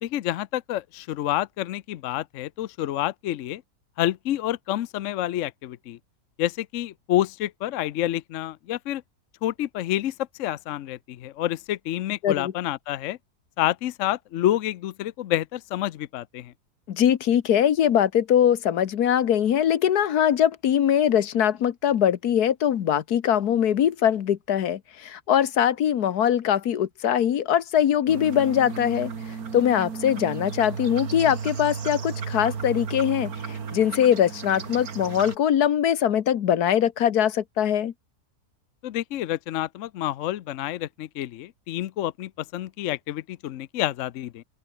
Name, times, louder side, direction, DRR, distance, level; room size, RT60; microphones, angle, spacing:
voice 1, 0.0-3.6 4.0-6.0 6.4-9.0 9.4-13.2 13.6-16.5 38.8-44.4, left 13 dB, 65° left, 0.9 m, -28 dB
voice 2, 16.9-29.1 29.5-37.9, left 9 dB, 80° left, 1.6 m, -22 dB
sound 1, 28.1-35.4, right 6 dB, 70° right, 2.3 m, -34 dB
omnidirectional pair, 1.6 m